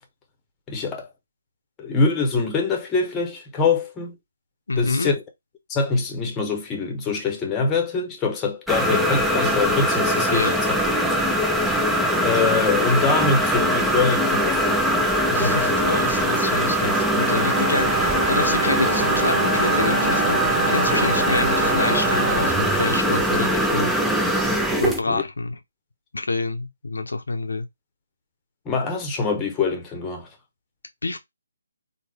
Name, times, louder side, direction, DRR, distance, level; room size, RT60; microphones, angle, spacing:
voice 1, 0.7-1.1 1.8-4.1 4.8-5.2 5.7-10.5 12.2-14.8 25.1-25.2 28.7-30.3, left 4 dB, 15° left, 0.7 m, -24 dB
voice 2, 4.7-5.1 10.3-10.5 15.3-20.4 20.7-23.9 24.8-25.6 26.1-27.7 31.0-31.2, left 3 dB, 75° left, 0.6 m, -27 dB
sound 1, 8.7-25.0, equal, ahead, 0.3 m, -21 dB
Bowed string instrument, 17.2-23.3, right 3 dB, 85° right, 0.5 m, -27 dB
3.4 x 2.0 x 3.4 m
figure-of-eight pair, 150°, 0 cm